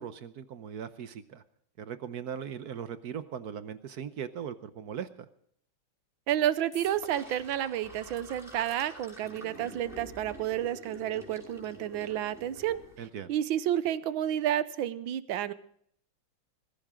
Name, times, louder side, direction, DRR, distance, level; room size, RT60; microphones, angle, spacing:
voice 1, 0.0-1.4 1.8-5.1 13.0-13.3, right 8 dB, 60° right, 12 dB, 1.2 m, -39 dB
voice 2, 6.3-12.8 13.3-15.5, right 11 dB, 80° right, 15 dB, 1.6 m, -30 dB
sound 1, 6.7-7.0 7.4-7.5 8.1-9.8 10.7-10.8 11.0-11.1, left 1 dB, 15° left, 4.2 m, -54 dB
Sink (filling or washing), 6.8-13.1, equal, ahead, 5.2 m, -48 dB
20.0 x 15.5 x 3.7 m, 0.65 s
omnidirectional pair, 2.2 m